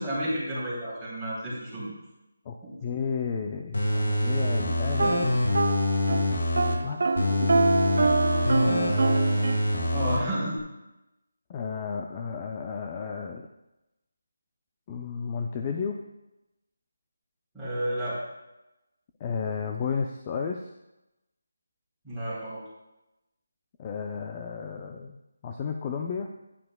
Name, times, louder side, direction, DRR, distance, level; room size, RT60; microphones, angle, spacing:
voice 1, 0.0-2.0 2.6-2.7 9.9-10.6 17.5-18.2 22.0-22.6, right 1 dB, ahead, -13 dB, 3.5 m, -31 dB
voice 2, 2.8-5.5 6.8-7.0 8.5-9.6 11.5-13.5 14.9-16.0 19.2-20.7 23.8-25.2 25.4-26.3, left 6 dB, 20° left, 3 dB, 0.4 m, -32 dB
sound 1, 3.7-6.7 7.2-10.2 10.6-10.7, left 1 dB, 70° left, 2.0 m, -25 dB
sound 2, 4.9-6.3 6.6-9.6, right 3 dB, 60° right, 0.6 m, -25 dB
10.5 x 9.9 x 2.3 m, 0.96 s
figure-of-eight pair, 170°, 0 cm